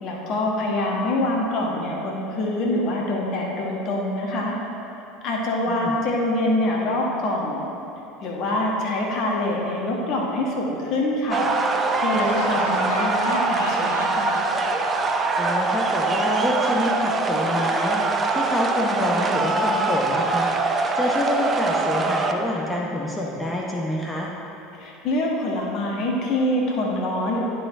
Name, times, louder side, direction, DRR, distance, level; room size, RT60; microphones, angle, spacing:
voice 1, 0.0-4.5 5.2-7.6 8.2-11.5 12.0-14.3 24.7-27.4, left 1 dB, 50° left, -2 dB, 1.3 m, -25 dB
voice 2, 5.6-6.0 15.4-24.3, left 1 dB, 10° left, -2 dB, 1.0 m, -27 dB
sound 1, 11.3-22.3, right 3 dB, 25° right, 0.5 m, -23 dB
Laughter, 12.1-16.0, left 3 dB, 75° left, 0.7 m, -33 dB
11.0 x 4.7 x 3.6 m, 3.0 s
figure-of-eight pair, 70°, 0 cm